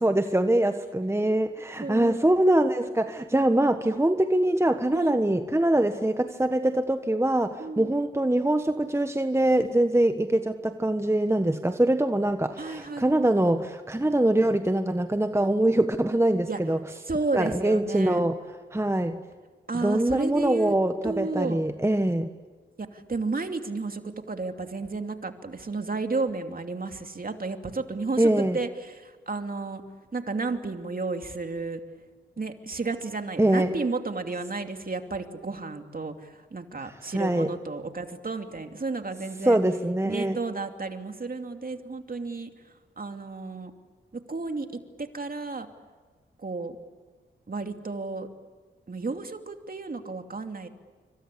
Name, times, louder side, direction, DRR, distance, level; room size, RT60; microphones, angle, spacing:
voice 1, 0.0-16.8 17.3-18.4 18.7-19.2 19.7-22.3 28.2-28.6 33.4-33.7 37.1-37.5 39.4-40.4, right 1 dB, 10° right, 8 dB, 1.4 m, -23 dB
voice 2, 1.8-2.2 4.9-5.2 7.6-7.9 12.6-13.1 16.5-16.6 17.1-18.2 19.7-20.7 21.0-21.6 22.8-24.0 24.3-29.8 30.1-31.8 32.4-39.6 40.0-42.5 43.0-43.7 44.1-45.7 46.4-46.8 47.5-48.3 48.9-50.7, right 3 dB, 45° right, 5 dB, 2.7 m, -32 dB
27.0 x 25.0 x 8.5 m, 1.4 s
supercardioid pair, 45°, 21 cm